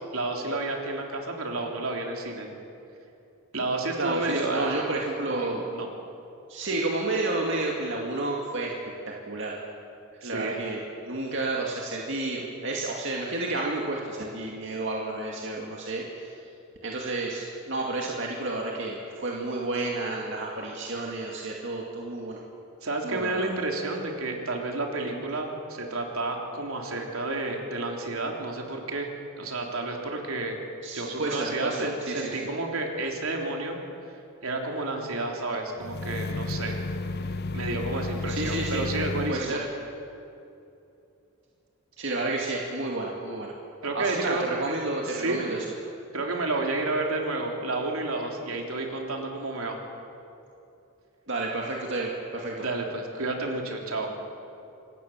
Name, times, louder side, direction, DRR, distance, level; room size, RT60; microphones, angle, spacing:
voice 1, 0.1-2.5 3.5-4.8 5.2-5.9 10.2-10.6 22.8-30.6 30.9-33.8 34.4-36.8 37.2-39.6 43.8-44.4 45.1-45.4 46.1-49.8 52.6-54.1, right 2 dB, 75° right, 1 dB, 3.5 m, -31 dB
voice 2, 4.0-5.7 6.5-8.7 9.1-9.6 10.2-16.3 16.8-22.4 23.0-23.5 30.8-32.4 38.3-38.8 39.3-39.6 42.0-43.5 43.9-45.6 51.3-52.6, right 2 dB, 55° right, -2 dB, 2.3 m, -31 dB
sound 1, 35.8-39.5, left 2 dB, 45° left, 0.5 m, -32 dB
26.0 x 19.0 x 7.3 m, 2.7 s
head